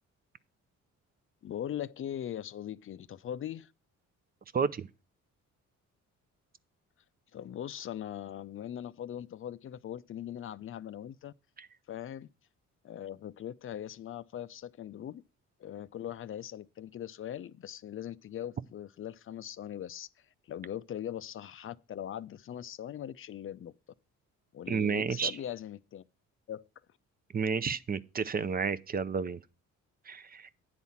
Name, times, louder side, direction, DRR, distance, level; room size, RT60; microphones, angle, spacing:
voice 1, 1.4-3.7 7.3-11.3 11.9-12.3 12.8-15.2 15.6-20.1 20.5-23.7 24.5-26.1 26.5-26.7, left 10 dB, 45° left, 0.5 m, -40 dB
voice 2, 4.5-4.9 11.6-11.7 24.7-25.3 27.3-29.4 30.1-30.5, right 5 dB, 30° right, 0.5 m, -31 dB
9.4 x 4.1 x 7.2 m
cardioid pair, 90°, 30 cm